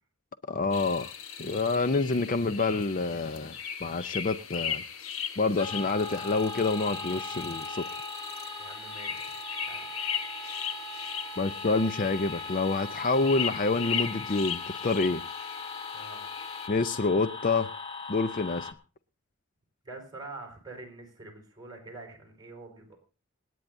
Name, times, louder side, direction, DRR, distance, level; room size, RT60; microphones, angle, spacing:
voice 1, 0.5-1.1 1.4-3.6 3.8-4.8 5.4-7.9 11.4-15.2 16.7-17.7 18.1-18.7, left 3 dB, 40° left, 0.5 m, -27 dB
sound 1, 0.7-16.7, left 7 dB, 75° left, 1.1 m, -38 dB
sound 2, 5.6-18.7, left 3 dB, 25° left, 1.1 m, -39 dB
voice 2, 8.6-9.9 15.9-16.3 19.8-23.0, right 3 dB, 20° right, 4.8 m, -46 dB
28.0 x 9.4 x 2.6 m
head